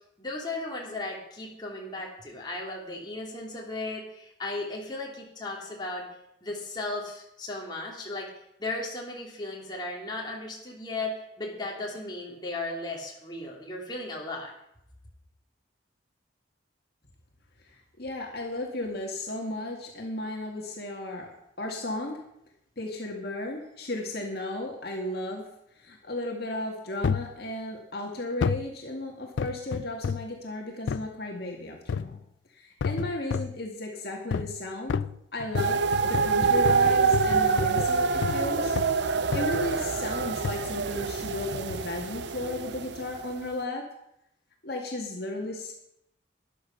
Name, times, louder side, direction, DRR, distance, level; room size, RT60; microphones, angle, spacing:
voice 1, 0.2-6.1 6.4-8.3 8.6-14.5, left 2 dB, 25° left, -2 dB, 2.9 m, -36 dB
voice 2, 18.0-22.2 22.8-25.5 25.8-32.2 32.5-35.1 35.3-38.8 39.3-43.9 44.6-45.7, left 2 dB, 55° left, 0 dB, 2.1 m, -34 dB
sound 1, 27.0-27.4 28.4-28.7 29.4-30.3 30.9-31.1 31.9-32.2 32.8-33.6 34.3-34.6 34.9-38.5 38.8-39.0 39.3-39.7 40.4-40.7 41.5-41.8 42.4-42.5, left 6 dB, 75° left, 0.4 m, -31 dB
sound 2, 35.6-43.4, right 5 dB, 65° right, 0.6 m, -26 dB
13.0 x 10.5 x 5.9 m, 0.81 s
head